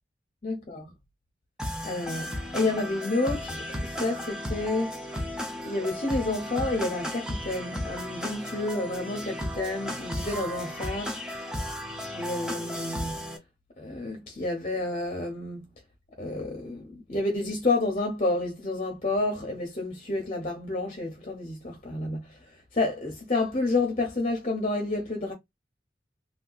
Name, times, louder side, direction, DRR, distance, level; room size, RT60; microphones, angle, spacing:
voice 1, 0.4-0.8 1.8-5.0 5.6-11.2 12.1-13.3 13.8-15.7 16.2-25.3, left 2 dB, 35° left, 0.9 m, -30 dB
sound 1, 1.6-13.4, equal, 5° right, 0.7 m, -34 dB
3.2 x 2.8 x 2.4 m
head